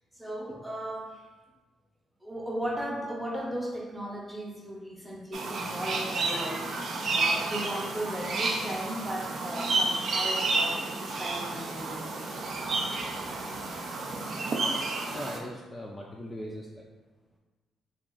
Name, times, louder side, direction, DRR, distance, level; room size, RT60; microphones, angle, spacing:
voice 1, 0.2-1.2 2.2-6.7 7.1-12.4, right 1 dB, 5° right, -2 dB, 0.8 m, -36 dB
sound 1, 5.3-15.4, right 3 dB, 55° right, 0.4 m, -31 dB
voice 2, 15.1-16.9, equal, 20° left, -2 dB, 0.3 m, -40 dB
2.8 x 2.5 x 3.8 m, 1.3 s
cardioid pair, 90°, 0 cm